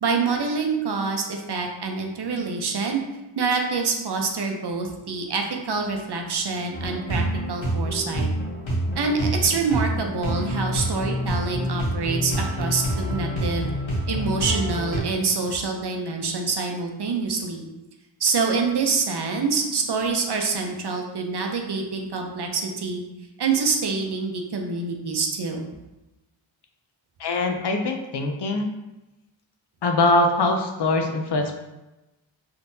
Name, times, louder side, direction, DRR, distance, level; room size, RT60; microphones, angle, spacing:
voice 1, 0.0-3.0 3.4-8.3 9.0-13.7 14.1-17.7 18.2-23.0 23.4-25.7, right 4 dB, 60° right, 2 dB, 0.6 m, -26 dB
sound 1, 6.7-15.0, equal, 75° left, 1.1 m, -27 dB
voice 2, 27.2-28.7 29.8-31.6, left 2 dB, 60° left, 4 dB, 0.6 m, -22 dB
3.6 x 2.8 x 2.6 m, 1.0 s
cardioid pair, 50°, 47 cm